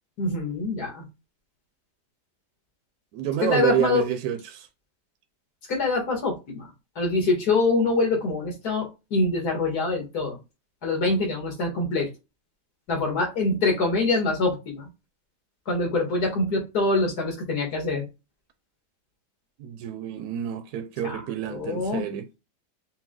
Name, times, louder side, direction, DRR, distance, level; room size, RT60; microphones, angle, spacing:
voice 1, 0.2-1.1 3.4-4.0 5.7-6.7 7.0-10.4 10.8-12.1 12.9-14.9 15.7-18.1 21.0-22.1, left 3 dB, 65° left, 2.3 m, -25 dB
voice 2, 3.1-4.7 13.1-13.2 19.6-22.3, right 10 dB, 70° right, 1.0 m, -28 dB
5.8 x 2.2 x 3.8 m
omnidirectional pair, 1.8 m